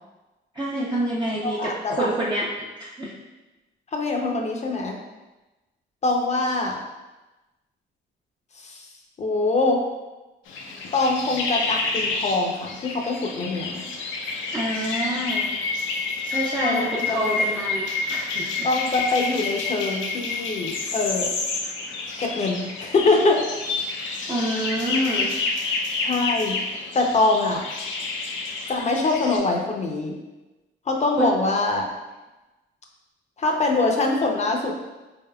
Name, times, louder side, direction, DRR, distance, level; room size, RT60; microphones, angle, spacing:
voice 1, 0.5-2.5 2.8-3.1 14.5-15.5 16.2-18.7 24.3-25.3 31.2-31.3, right 1 dB, 20° right, -7 dB, 0.6 m, -27 dB
voice 2, 1.4-2.1 3.9-5.0 6.0-6.8 8.6-8.8 9.2-9.8 10.9-13.9 16.6-17.3 18.6-21.3 22.2-23.4 26.0-26.6 26.9-27.6 28.7-30.1 30.9-31.8 33.4-34.8, left 3 dB, 35° left, 1 dB, 0.7 m, -23 dB
sound 1, 10.5-29.4, left 4 dB, 75° left, 0.6 m, -29 dB
3.9 x 3.6 x 2.3 m, 1.1 s
cardioid pair, 90°, 20 cm